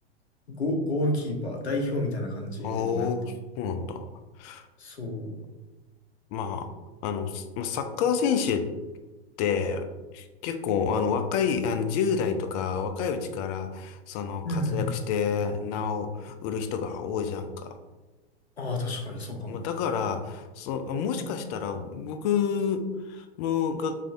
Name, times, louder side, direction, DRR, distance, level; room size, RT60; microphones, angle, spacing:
voice 1, 0.5-3.1 4.8-5.3 14.4-14.9 18.6-19.6, left 1 dB, 85° left, 1 dB, 1.0 m, -30 dB
voice 2, 2.6-4.0 4.4-4.6 6.3-6.7 7.0-8.7 9.4-9.9 10.1-17.8 19.5-24.0, left 6 dB, 40° left, 8 dB, 0.5 m, -29 dB
5.4 x 3.3 x 2.6 m, 1.2 s
figure-of-eight pair, 100°, 32 cm